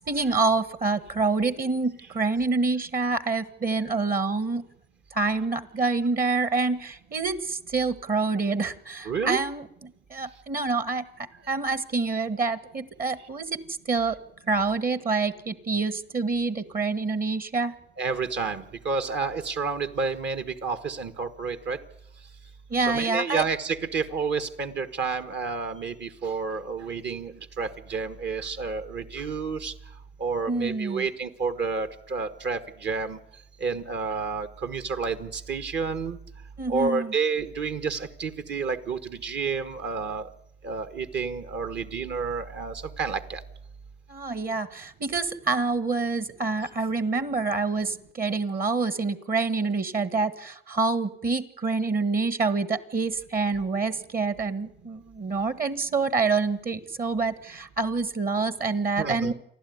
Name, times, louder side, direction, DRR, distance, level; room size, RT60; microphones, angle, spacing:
voice 1, 0.1-4.6 5.1-11.1 11.5-13.6 13.9-14.2 14.5-17.7 22.7-23.4 30.5-31.1 36.6-37.1 44.1-59.3, right 4 dB, 45° right, 14 dB, 1.5 m, -27 dB
voice 2, 9.0-9.4 18.0-21.8 22.8-29.7 30.2-33.2 33.6-36.2 36.7-40.3 40.6-43.4 59.0-59.3, right 5 dB, 65° right, 10 dB, 1.7 m, -30 dB
28.5 x 12.0 x 9.5 m, 0.78 s
cardioid pair, 90°, 20 cm